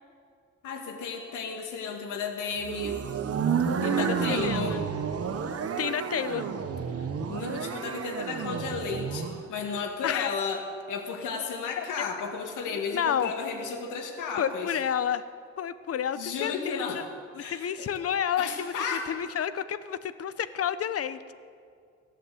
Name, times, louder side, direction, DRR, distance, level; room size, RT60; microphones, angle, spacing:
voice 1, 0.6-3.0 3.8-4.8 7.3-10.6 10.9-14.7 16.2-17.0 17.4-17.9 18.4-19.0, left 5 dB, 85° left, 2 dB, 2.4 m, -33 dB
sound 1, 2.6-9.4, right 6 dB, 50° right, 1.3 m, -30 dB
voice 2, 3.8-4.8 5.8-6.5 10.0-10.3 11.8-12.0 12.7-13.3 14.4-15.3 15.6-17.0 17.3-21.3, left 8 dB, 50° left, 14 dB, 0.9 m, -30 dB
17.0 x 10.5 x 7.8 m, 2.2 s
cardioid pair, 90°, 30 cm